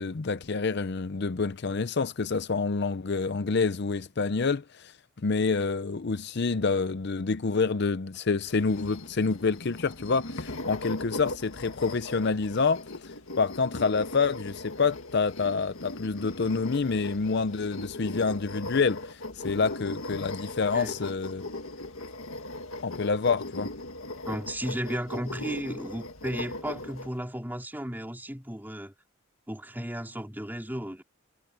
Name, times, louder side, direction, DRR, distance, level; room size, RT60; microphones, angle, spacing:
voice 1, 0.0-21.4 22.8-23.7, left 4 dB, 55° left, 0.6 m, -27 dB
sound 1, 8.5-27.1, left 2 dB, 80° left, 2.0 m, -39 dB
voice 2, 24.3-28.9 29.5-31.0, equal, 10° right, 4.1 m, -34 dB
head